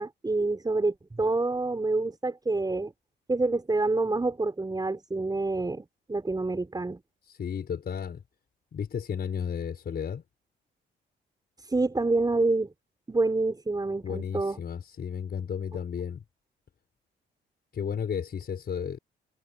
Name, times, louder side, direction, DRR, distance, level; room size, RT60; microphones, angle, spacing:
voice 1, 0.0-2.9 3.3-7.0 11.6-12.7 13.1-14.6, right 2 dB, 20° right, 6.5 m, -27 dB
voice 2, 7.3-8.2 8.7-10.2 14.0-16.2 17.7-19.0, left 7 dB, 50° left, 5.2 m, -33 dB
cardioid pair, 90°, 20 cm